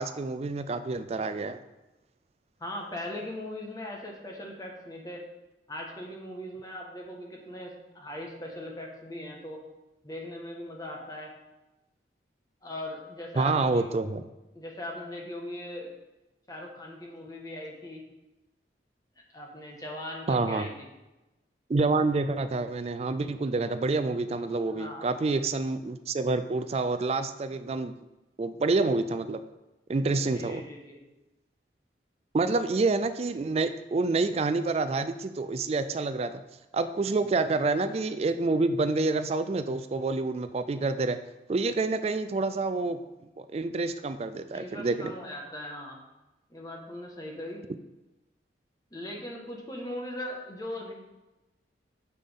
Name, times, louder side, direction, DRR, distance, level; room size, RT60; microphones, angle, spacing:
voice 1, 0.0-1.6 13.4-14.2 20.3-20.7 21.7-27.9 28.4-29.4 29.9-30.6 32.3-36.3 36.7-41.2 41.5-43.0 43.5-45.1, right 3 dB, 35° right, 11 dB, 0.3 m, -28 dB
voice 2, 2.6-5.2 5.7-9.6 10.0-11.3 12.6-13.9 14.5-15.9 16.5-18.0 19.3-20.9 24.7-25.1 30.1-31.0 44.5-46.0 46.5-47.6 48.9-50.9, left 1 dB, 20° left, 0 dB, 1.4 m, -39 dB
9.2 x 6.9 x 3.6 m, 1.0 s
head